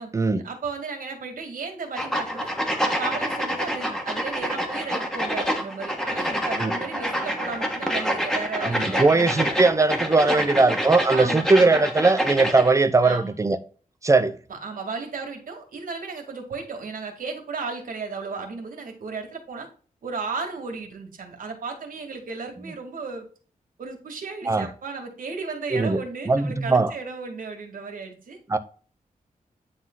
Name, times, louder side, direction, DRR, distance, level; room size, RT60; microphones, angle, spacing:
voice 1, 0.0-2.5 2.8-9.5 10.4-10.7 11.1-11.8 13.0-13.4 14.5-19.7 20.0-23.3 23.8-28.4, right 4 dB, 75° right, 2.1 m, -34 dB
sound 1, 2.0-12.7, equal, 5° left, 1.4 m, -27 dB
voice 2, 8.6-13.6 14.0-14.4 24.5-24.7 25.7-26.0 26.3-26.9 28.5-28.6, right 3 dB, 20° right, 0.7 m, -20 dB
9.5 x 3.8 x 3.8 m
wide cardioid pair, 145°, 14 cm